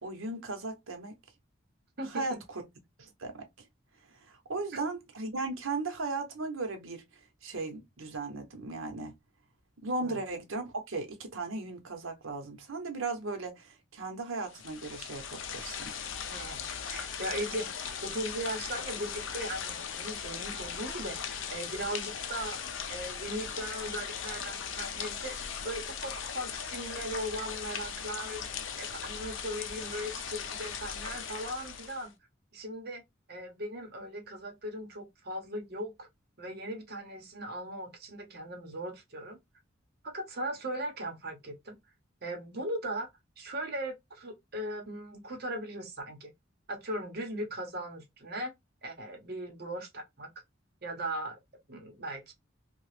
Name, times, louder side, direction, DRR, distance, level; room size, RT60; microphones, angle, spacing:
voice 1, 0.0-1.1 2.1-2.6 3.0-3.4 4.3-7.0 7.4-9.1 9.8-15.9, right 3 dB, 80° right, 0.9 m, -36 dB
voice 2, 2.0-2.4 10.0-10.2 16.3-22.6 22.9-25.4 25.6-28.4 28.8-32.1 32.5-33.0 33.3-36.1 36.4-39.4 40.0-41.8 42.2-43.1 43.4-46.3 46.7-48.5 48.8-50.3 50.8-51.4 51.7-52.3, right 1 dB, 50° right, 1.0 m, -38 dB
sound 1, 14.4-32.1, left 7 dB, 65° left, 0.5 m, -38 dB
2.8 x 2.3 x 3.1 m
head